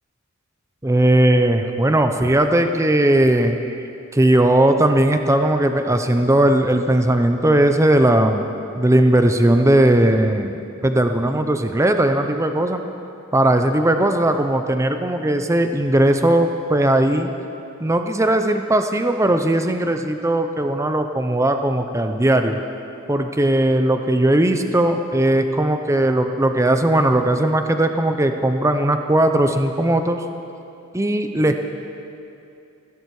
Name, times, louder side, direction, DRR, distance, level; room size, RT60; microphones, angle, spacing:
voice 1, 0.8-3.8 4.1-8.5 8.8-12.8 13.3-17.3 17.8-22.6 23.1-30.2 30.9-31.6, right 1 dB, 15° right, 6 dB, 0.6 m, -18 dB
17.0 x 16.0 x 4.8 m, 2.6 s
head